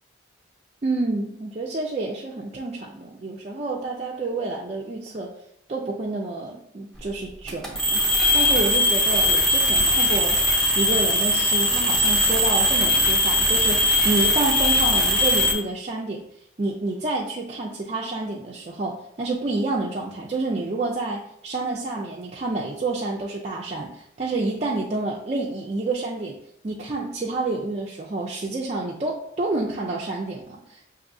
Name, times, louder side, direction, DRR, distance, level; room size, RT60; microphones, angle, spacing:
voice 1, 0.8-5.3 5.7-8.1 8.3-10.4 10.8-16.2 16.6-26.4 26.6-30.9, right 2 dB, 35° right, -4 dB, 0.4 m, -29 dB
sound 1, 7.5-15.5, left 1 dB, 5° left, 0.7 m, -20 dB
6.0 x 2.6 x 2.6 m, 0.73 s
head